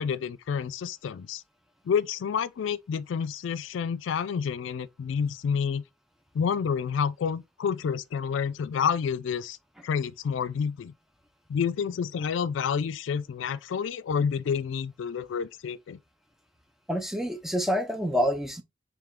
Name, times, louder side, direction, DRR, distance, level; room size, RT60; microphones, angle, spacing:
voice 1, 0.0-1.4 1.9-5.8 6.3-9.6 9.8-10.9 11.5-16.0, left 7 dB, 80° left, 0.3 m, -29 dB
voice 2, 16.9-18.6, equal, ahead, 0.5 m, -27 dB
3.5 x 3.1 x 3.5 m
head